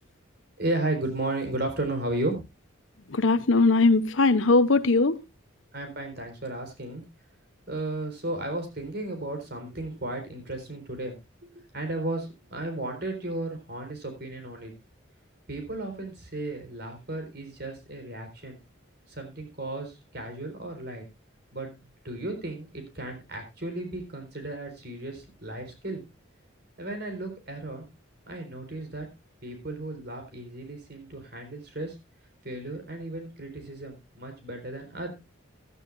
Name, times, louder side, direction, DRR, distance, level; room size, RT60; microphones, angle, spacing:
voice 1, 0.6-2.4 5.7-7.0 7.7-11.2 11.4-14.7 15.5-18.6 19.1-21.0 21.5-21.7 22.0-26.0 26.8-27.9 28.3-29.1 29.4-31.9 32.4-35.1, right 2 dB, 50° right, 4.3 m, -34 dB
voice 2, 3.1-5.2, left 3 dB, 70° left, 0.8 m, -20 dB
16.0 x 12.5 x 2.5 m
head